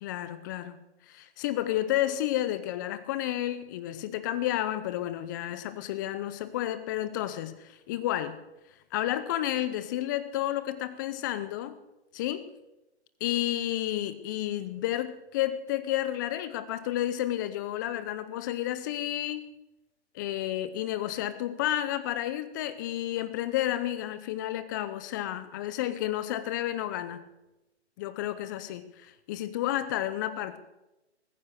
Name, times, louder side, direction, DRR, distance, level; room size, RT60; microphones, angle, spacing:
voice 1, 0.0-0.8 1.1-8.4 8.9-11.8 12.1-12.5 13.2-19.5 20.1-27.3 28.0-30.6, left 13 dB, 15° left, 13 dB, 0.6 m, -31 dB
21.0 x 9.7 x 6.6 m, 0.96 s
hypercardioid pair, 150°, 35 cm